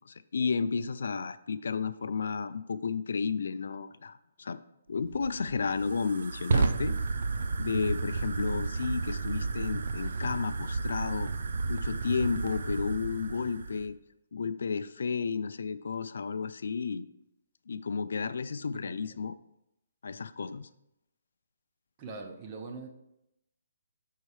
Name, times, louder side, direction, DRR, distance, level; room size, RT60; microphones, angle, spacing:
voice 1, 0.1-4.6 4.9-6.9 7.6-14.0 14.3-17.1 17.7-19.4 20.0-20.7, left 5 dB, 70° left, 14 dB, 0.3 m, -32 dB
Fire, 4.9-13.9, right 4 dB, 60° right, 0.5 m, -32 dB
voice 2, 18.7-19.3 22.0-22.9, right 4 dB, 25° right, 4 dB, 0.7 m, -43 dB
5.5 x 4.0 x 4.8 m, 0.84 s
hypercardioid pair, 170°, 0 cm